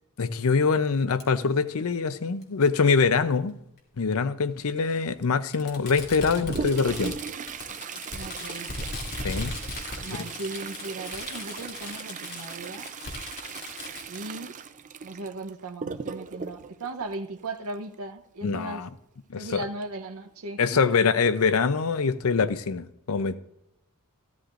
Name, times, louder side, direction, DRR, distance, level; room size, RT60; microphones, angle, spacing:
voice 1, 0.2-3.5 4.0-7.2 9.2-9.6 10.2-10.3 18.4-18.9 19.3-19.6 20.6-23.4, left 5 dB, 70° left, 13 dB, 0.6 m, -24 dB
Fireworks, 1.2-1.3 2.4-2.5 3.8-3.9 5.5-14.3, left 2 dB, 45° left, 2.5 m, -38 dB
Toilet flush, 6.0-17.9 19.8-19.9 20.3-20.4 21.1-21.2 21.9-22.1 22.6-22.7, right 5 dB, 35° right, 0.5 m, -38 dB
voice 2, 8.1-8.7 10.0-12.9 14.1-14.6 15.0-18.8 19.3-20.8, right 2 dB, 75° right, 4 dB, 0.8 m, -37 dB
14.5 x 13.0 x 2.5 m, 0.82 s
head